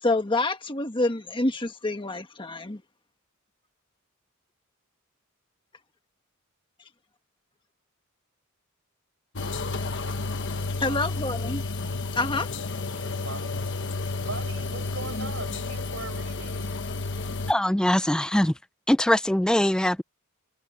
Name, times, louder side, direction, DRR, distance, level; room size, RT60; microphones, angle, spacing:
voice 1, 0.0-2.8 10.8-11.6 12.1-12.5, left 2 dB, 25° left, 1.5 m, -27 dB
sound 1, 9.4-17.5, left 3 dB, 60° left, 1.3 m, -31 dB
voice 2, 10.6-11.2 12.3-12.5 12.8-16.8, right 3 dB, 65° right, 5.6 m, -41 dB
voice 3, 17.5-18.5 18.9-20.0, left 1 dB, 5° left, 0.4 m, -22 dB
head